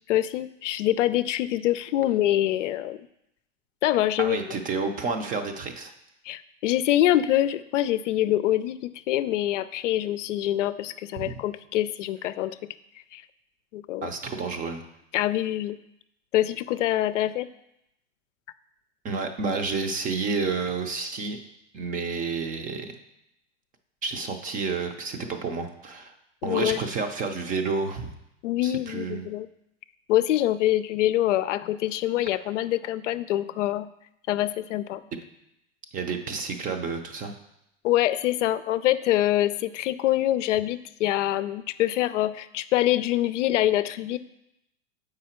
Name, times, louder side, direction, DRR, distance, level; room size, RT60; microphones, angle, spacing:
voice 1, 0.1-3.0 3.8-4.4 6.3-12.6 13.1-13.2 13.7-14.1 15.1-15.8 16.3-17.5 26.4-26.8 28.4-29.5 30.1-33.9 34.3-35.0 37.8-44.2, left 13 dB, 75° left, 13 dB, 0.5 m, -25 dB
voice 2, 4.2-5.9 11.2-11.4 14.0-14.8 19.0-21.4 21.7-22.9 24.0-26.1 26.4-28.1 28.6-29.3 35.9-37.3, right 4 dB, 20° right, 6 dB, 0.6 m, -30 dB
7.3 x 5.0 x 4.3 m, 0.82 s
hypercardioid pair, 130°, 37 cm